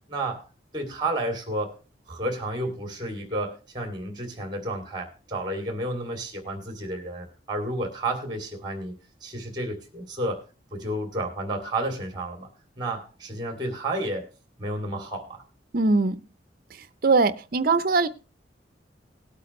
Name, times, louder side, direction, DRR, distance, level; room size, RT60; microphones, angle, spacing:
voice 1, 0.1-0.4 0.7-1.7 2.1-9.0 9.2-10.4 10.7-12.5 12.8-14.3 14.6-15.4, right 1 dB, 25° right, 2.6 m, -31 dB
voice 2, 15.7-16.2 17.0-18.1, right 3 dB, 50° right, 0.6 m, -21 dB
19.0 x 8.4 x 3.2 m
head